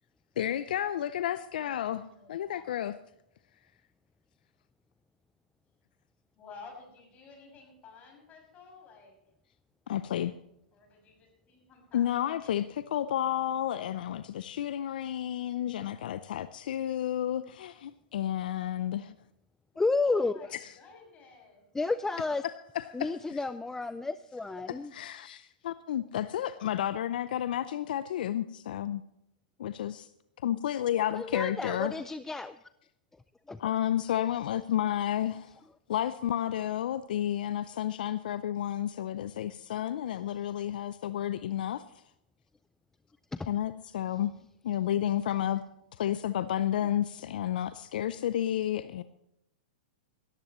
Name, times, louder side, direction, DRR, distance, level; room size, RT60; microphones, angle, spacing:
voice 1, 0.4-2.0 2.3-2.9 9.9-10.3 11.9-19.1 20.5-20.6 22.4-23.4 24.7-29.0 29.6-30.1 30.4-31.9 33.6-35.6 35.9-41.8 43.5-44.3 44.6-45.6 46.0-49.0, left 11 dB, 70° left, 14 dB, 0.5 m, -31 dB
voice 2, 1.6-2.7 6.3-9.2 10.7-12.5 16.9-17.1 20.0-21.7, left 4 dB, 30° left, 1 dB, 6.4 m, -53 dB
voice 3, 19.8-20.4 21.7-22.4 22.9-24.9 31.2-32.6 33.5-33.6 43.3-43.5, left 3 dB, 10° left, 13 dB, 0.4 m, -31 dB
18.0 x 14.0 x 3.1 m, 0.79 s
hypercardioid pair, 120°, 5 cm